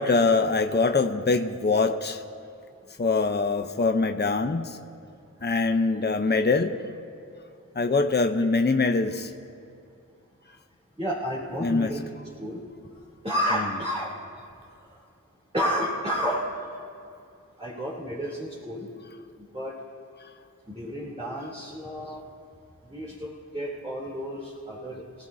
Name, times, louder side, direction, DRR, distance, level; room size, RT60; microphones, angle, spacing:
voice 1, 0.0-2.2 3.0-4.8 5.4-6.8 7.8-9.3 11.6-11.9, left 3 dB, 30° left, 6 dB, 0.8 m, -23 dB
voice 2, 11.0-12.0 12.4-12.6 13.2-14.1 15.5-16.4 17.6-18.9 19.4-19.7 20.7-22.2 22.9-25.0, equal, 20° right, -7 dB, 3.2 m, -31 dB
26.0 x 14.5 x 2.8 m, 2.5 s
cardioid pair, 40°, 33 cm